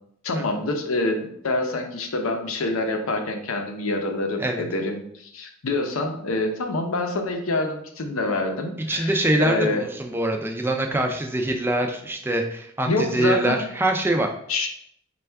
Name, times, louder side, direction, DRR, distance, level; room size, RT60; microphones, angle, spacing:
voice 1, 0.2-9.8 12.9-13.6 14.5-14.7, left 2 dB, 90° left, 4 dB, 0.6 m, -26 dB
voice 2, 8.8-14.3, right 1 dB, 10° right, 3 dB, 0.3 m, -24 dB
4.4 x 2.3 x 3.3 m, 0.70 s
head